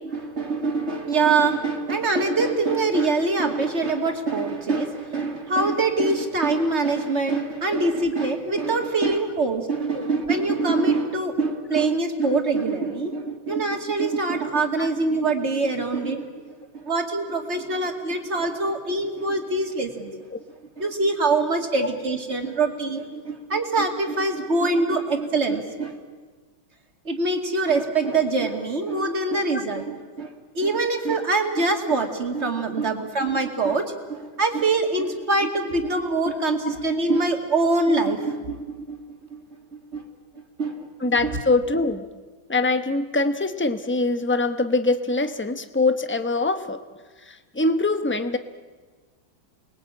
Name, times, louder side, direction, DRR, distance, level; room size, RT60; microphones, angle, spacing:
voice 1, 0.0-20.1 20.8-26.0 27.0-30.3 30.5-39.0 39.3-39.4 39.7-40.0 40.6-40.9 41.2-41.4, right 3 dB, 35° right, 4 dB, 2.6 m, -24 dB
voice 2, 41.0-42.0 42.5-46.8 47.3-48.4, left 3 dB, 15° left, 8 dB, 0.4 m, -23 dB
29.5 x 21.0 x 8.8 m, 1.4 s
omnidirectional pair, 2.1 m